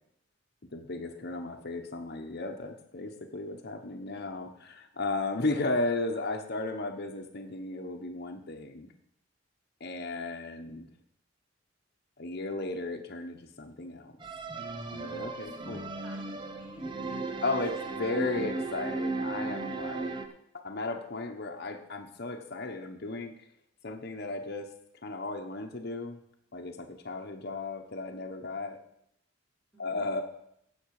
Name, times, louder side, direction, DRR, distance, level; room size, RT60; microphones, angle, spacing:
voice 1, 0.7-8.9 9.8-10.9 12.2-14.2 14.9-15.9 17.4-20.2 20.6-23.3 23.8-24.7 25.0-26.2 26.5-28.8 29.8-30.2, left 2 dB, 55° left, 3 dB, 1.1 m, -35 dB
sound 1, 14.2-20.3, right 3 dB, 25° right, 0.8 m, -36 dB
voice 2, 15.4-18.4 29.7-30.1, right 1 dB, 5° right, -3 dB, 2.9 m, -55 dB
16.0 x 6.4 x 4.9 m, 0.75 s
head